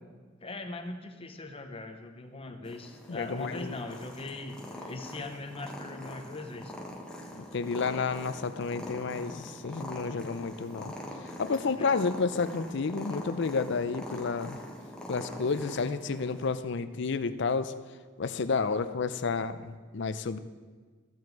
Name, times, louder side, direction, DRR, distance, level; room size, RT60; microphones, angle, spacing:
voice 1, 0.4-6.9 11.8-12.0, left 2 dB, 30° left, 6 dB, 0.8 m, -40 dB
Purr, 2.6-16.6, left 1 dB, 5° left, 1.2 m, -43 dB
voice 2, 3.1-3.7 7.4-10.9 11.4-14.6 15.1-17.7 18.2-20.4, left 4 dB, 65° left, 13 dB, 0.5 m, -31 dB
13.5 x 7.6 x 4.6 m, 1.5 s
head